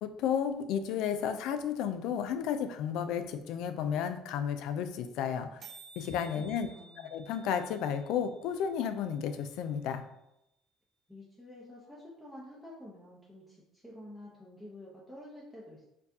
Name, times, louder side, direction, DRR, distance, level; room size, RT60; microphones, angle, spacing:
voice 1, 0.0-5.6 6.0-6.7 7.1-10.0, left 8 dB, 75° left, 9 dB, 0.3 m, -32 dB
sound 1, 3.5-3.6 3.8-3.9 4.1-4.3 4.6-4.7 4.8-5.1 5.3-5.4 5.6-9.6, right 4 dB, 50° right, 0.5 m, -55 dB
voice 2, 6.6-7.2 11.1-15.8, left 1 dB, 5° left, -6 dB, 0.7 m, -49 dB
4.4 x 2.4 x 2.7 m, 0.84 s
cardioid pair, 110°, 0 cm